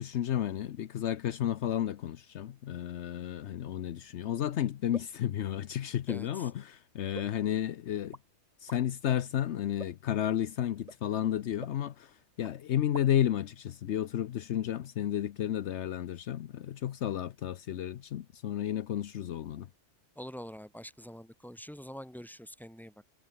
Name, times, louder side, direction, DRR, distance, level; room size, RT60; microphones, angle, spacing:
voice 1, 0.0-8.2 8.6-19.7, left 11 dB, 75° left, 1.0 m, -32 dB
sound 1, 4.9-5.2 6.1-6.3 7.1-7.7 8.1-8.2 8.7-8.8 9.8-10.1 10.9-11.0 11.6-12.2 12.4-12.5 12.8-13.3, right 1 dB, 30° right, 4.8 m, -46 dB
voice 2, 6.1-6.5 20.2-22.9, equal, ahead, 3.2 m, -45 dB
omnidirectional pair, 1.2 m